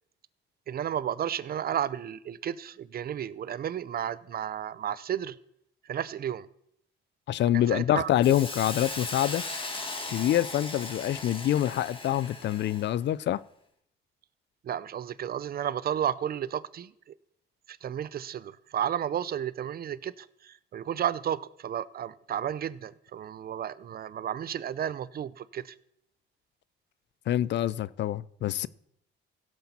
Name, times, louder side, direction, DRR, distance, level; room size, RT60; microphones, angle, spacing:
voice 1, 0.7-5.4 5.8-6.5 7.5-8.1 14.6-17.1 17.7-25.8, right 9 dB, 50° right, 0.6 m, -33 dB
voice 2, 7.3-9.4 10.1-13.4 27.3-28.7, left 12 dB, 65° left, 0.5 m, -26 dB
Hiss, 8.2-12.9, left 2 dB, 25° left, 2.1 m, -38 dB
16.5 x 7.9 x 4.3 m
cardioid pair, 90°, 20 cm